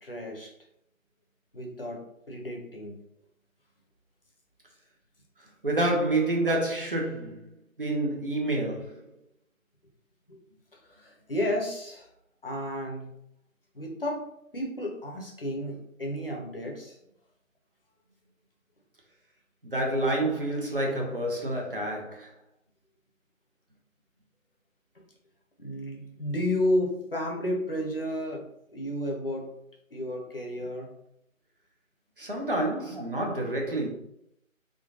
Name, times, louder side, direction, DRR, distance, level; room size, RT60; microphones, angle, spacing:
voice 1, 0.0-0.5 1.5-3.0 10.3-10.4 10.8-12.1 12.4-13.1 13.7-14.3 14.5-17.0 25.6-29.5 29.9-30.9 32.9-33.0, left 1 dB, 45° left, 0.9 m, -32 dB
voice 2, 5.6-7.4 7.8-9.0 19.6-22.3 32.2-33.9, right 1 dB, 40° right, 0.8 m, -28 dB
3.7 x 2.2 x 3.8 m
figure-of-eight pair, 160°, 42 cm